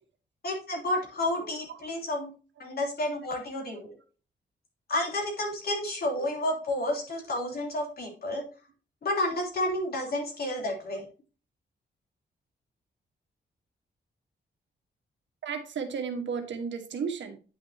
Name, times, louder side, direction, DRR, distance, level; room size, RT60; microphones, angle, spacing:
voice 1, 0.4-2.3 2.6-3.9 4.9-8.4 9.0-11.0, left 1 dB, 55° left, 0 dB, 3.1 m, -30 dB
voice 2, 15.4-17.4, right 6 dB, 75° right, 6 dB, 1.4 m, -33 dB
9.6 x 6.1 x 2.8 m, 0.35 s
wide cardioid pair, 125°, 19 cm